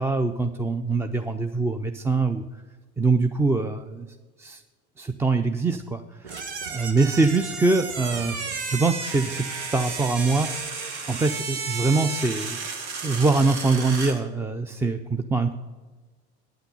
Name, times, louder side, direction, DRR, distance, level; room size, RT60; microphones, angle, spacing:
voice 1, 0.0-2.4 3.0-4.1 4.4-4.6 5.0-6.0 6.7-8.4 8.7-10.5 11.1-12.6 13.0-15.5, right 3 dB, 10° right, 7 dB, 0.3 m, -23 dB
sound 1, 6.2-14.2, right 4 dB, 90° right, 1.2 m, -33 dB
9.4 x 5.8 x 6.7 m, 1.3 s
hypercardioid pair, 90°, 33 cm